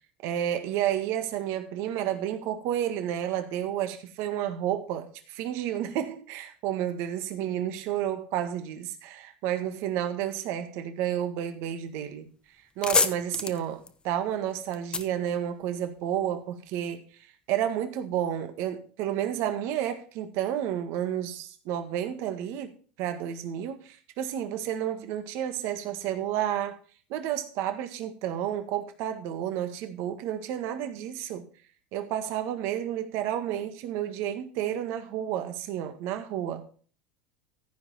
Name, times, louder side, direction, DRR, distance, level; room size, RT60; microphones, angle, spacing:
voice 1, 0.2-12.3 12.8-17.1 17.5-22.7 23.0-26.8 27.1-31.5 31.9-36.7, right 10 dB, 60° right, 1.7 m, -31 dB
sound 1, 12.1-12.2 12.5-16.1, left 4 dB, 20° left, 0.9 m, -30 dB
14.5 x 5.2 x 4.3 m
supercardioid pair, 120°, 5 cm